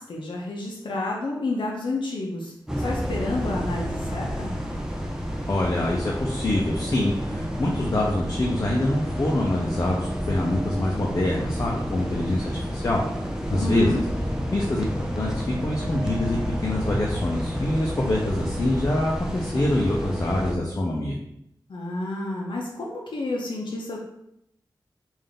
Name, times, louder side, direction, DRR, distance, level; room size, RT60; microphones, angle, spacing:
voice 1, 0.1-4.5 13.5-14.0 21.7-24.0, left 2 dB, 80° left, -2 dB, 0.6 m, -30 dB
sound 1, 2.7-20.6, equal, 5° right, 0.5 m, -30 dB
voice 2, 5.5-13.0 13.5-14.0 14.5-21.2, left 1 dB, 40° left, -3 dB, 0.6 m, -25 dB
3.4 x 2.6 x 3.8 m, 0.77 s
wide cardioid pair, 95°, 8 cm